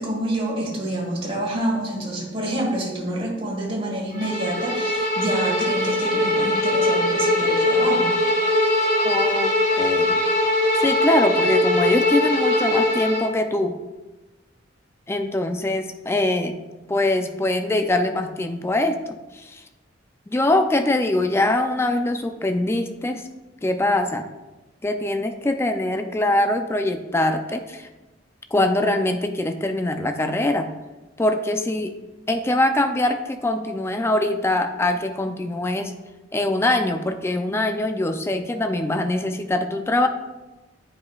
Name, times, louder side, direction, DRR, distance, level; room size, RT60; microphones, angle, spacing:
voice 1, 0.0-8.1, right 1 dB, 30° right, -2 dB, 1.5 m, -27 dB
Bowed string instrument, 4.2-13.3, left 1 dB, 40° left, 1.2 m, -21 dB
voice 2, 9.0-10.2 10.8-13.8 15.1-16.6 16.9-19.6 20.3-23.2 23.6-24.3 24.8-27.9 28.5-30.7 31.2-31.9 32.3-35.9 36.3-40.1, left 1 dB, 15° left, 6 dB, 0.4 m, -23 dB
9.4 x 4.9 x 2.4 m, 1.1 s
head